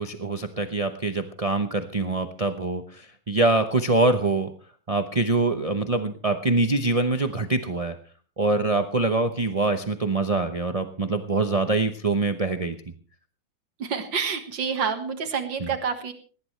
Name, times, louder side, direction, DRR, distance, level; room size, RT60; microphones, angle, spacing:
voice 1, 0.0-4.5 4.9-8.0 8.4-12.7 15.6-15.7, right 3 dB, 45° right, 7 dB, 0.4 m, -24 dB
voice 2, 13.8-16.1, right 6 dB, 70° right, 8 dB, 2.3 m, -28 dB
19.0 x 17.5 x 3.2 m, 0.41 s
omnidirectional pair, 2.2 m